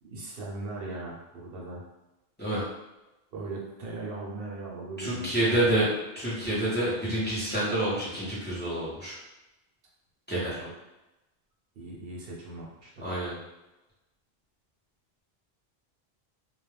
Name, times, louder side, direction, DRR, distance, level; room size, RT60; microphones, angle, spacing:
voice 1, 0.0-1.8 3.3-5.9 10.6-10.7 11.7-13.1, right 2 dB, 70° right, -3 dB, 0.8 m, -39 dB
voice 2, 5.0-5.9 6.2-9.2 10.3-10.6 13.0-13.3, right 1 dB, 10° left, -9 dB, 0.6 m, -28 dB
2.3 x 2.1 x 3.2 m, 1.0 s
omnidirectional pair, 1.0 m